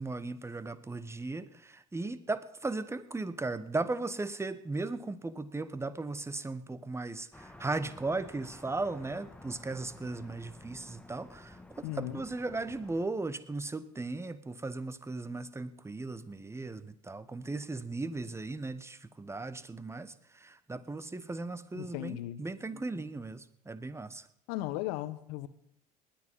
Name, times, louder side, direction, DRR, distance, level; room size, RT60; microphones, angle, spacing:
voice 1, 0.0-24.3, right 3 dB, 15° right, 15 dB, 1.1 m, -37 dB
sound 1, 7.3-13.1, left 1 dB, 5° left, 1.3 m, -52 dB
voice 2, 11.8-12.2 21.7-22.4 24.5-25.5, left 15 dB, 65° left, 14 dB, 1.1 m, -36 dB
19.5 x 9.9 x 5.6 m, 0.70 s
figure-of-eight pair, 60°, 21 cm